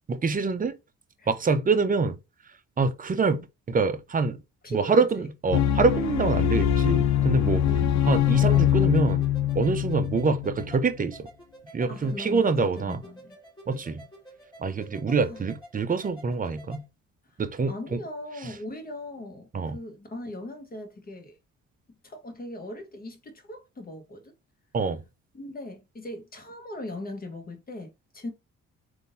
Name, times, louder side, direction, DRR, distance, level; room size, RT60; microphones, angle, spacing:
voice 1, 0.1-0.7 1.3-2.2 2.8-3.4 3.7-4.4 4.7-7.6 8.0-9.3 9.6-11.3 11.7-13.0 13.7-14.0 14.6-16.8 17.4-17.7 19.5-19.8 24.7-25.0, right 4 dB, 30° right, 0.6 m, -25 dB
voice 2, 4.6-5.3 7.6-8.1 11.9-13.4 15.2-15.4 17.3-17.4 17.7-21.4 22.0-24.3 25.3-28.3, left 1 dB, 30° left, 1.1 m, -39 dB
sound 1, 5.5-10.8, left 11 dB, 65° left, 0.5 m, -23 dB
sound 2, 8.1-16.8, right 1 dB, 15° left, 1.9 m, -49 dB
3.7 x 2.6 x 2.6 m
cardioid pair, 90°, 30 cm